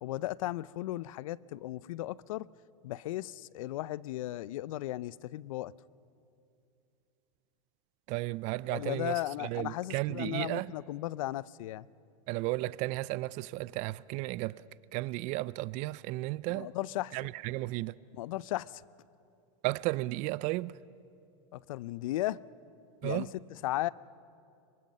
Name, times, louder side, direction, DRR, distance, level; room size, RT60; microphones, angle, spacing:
voice 1, 0.0-2.5 2.8-5.7 8.7-11.9 16.5-17.2 18.1-18.8 21.5-22.4 23.0-23.3 23.6-23.9, left 15 dB, 75° left, 0.6 m, -36 dB
voice 2, 8.1-9.1 9.4-10.7 12.3-14.6 14.9-16.7 17.1-17.9 19.6-20.8 23.0-23.3, right 19 dB, 45° right, 0.4 m, -34 dB
26.0 x 24.0 x 5.4 m
supercardioid pair, 125°, 17 cm